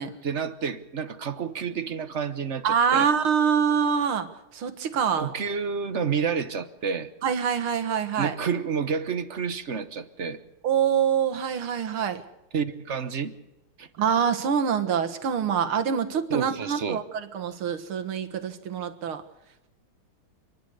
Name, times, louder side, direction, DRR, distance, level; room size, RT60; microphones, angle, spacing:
voice 1, 0.2-3.1 5.2-7.1 8.2-10.4 12.5-13.3 13.8-13.9 16.3-17.0, right 6 dB, 45° right, 11 dB, 1.1 m, -29 dB
voice 2, 2.6-4.3 4.5-5.3 7.2-8.3 10.6-12.2 14.0-19.2, right 7 dB, 80° right, 8 dB, 2.4 m, -25 dB
29.5 x 11.0 x 8.1 m, 0.96 s
omnidirectional pair, 2.3 m